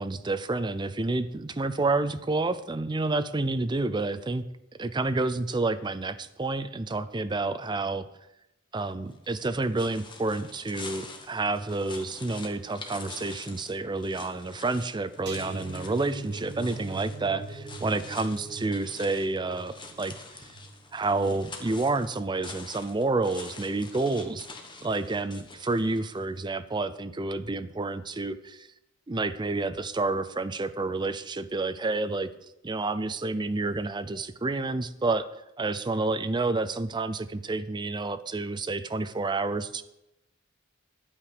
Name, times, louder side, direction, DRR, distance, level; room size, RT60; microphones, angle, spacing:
voice 1, 0.0-4.4 4.8-8.1 8.7-20.1 20.9-24.5 24.8-28.7 29.1-32.3 32.6-35.3 35.6-39.8, right 3 dB, 20° right, 12 dB, 0.5 m, -29 dB
sound 1, 9.1-26.3, left 3 dB, 25° left, 1.2 m, -46 dB
sound 2, 15.3-22.3 22.7-23.0 23.3-23.4, right 3 dB, 55° right, 2.3 m, -42 dB
11.0 x 8.7 x 5.0 m, 0.88 s
head